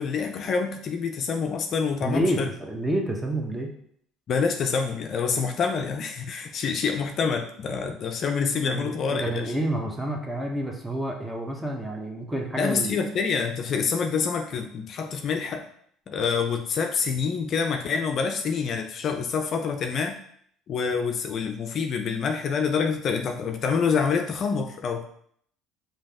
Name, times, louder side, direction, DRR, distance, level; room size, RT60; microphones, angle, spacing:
voice 1, 0.0-2.5 4.3-9.5 12.6-15.7 16.1-20.2 20.7-25.1, left 5 dB, 50° left, 5 dB, 0.4 m, -27 dB
voice 2, 2.0-3.7 8.6-13.0, right 1 dB, 10° right, 1 dB, 1.1 m, -29 dB
5.1 x 2.9 x 3.5 m, 0.64 s
hypercardioid pair, 60°, 0 cm